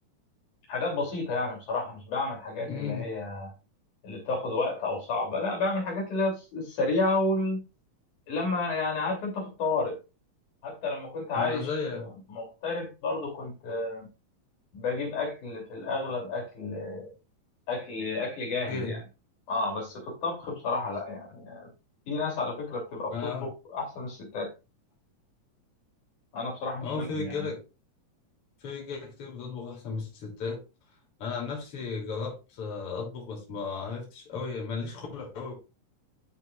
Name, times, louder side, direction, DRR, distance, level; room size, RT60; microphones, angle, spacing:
voice 1, 0.7-3.5 4.0-7.6 8.3-10.0 10.6-14.1 14.7-17.1 17.7-19.0 19.5-21.7 22.1-24.5 26.3-27.5, left 3 dB, 75° left, 4.3 m, -31 dB
voice 2, 2.7-3.1 11.4-12.1 18.7-19.0 23.1-23.5 26.8-27.6 28.6-30.6 31.2-35.5, left 5 dB, 45° left, 3.7 m, -35 dB
12.0 x 5.6 x 2.4 m
omnidirectional pair, 3.6 m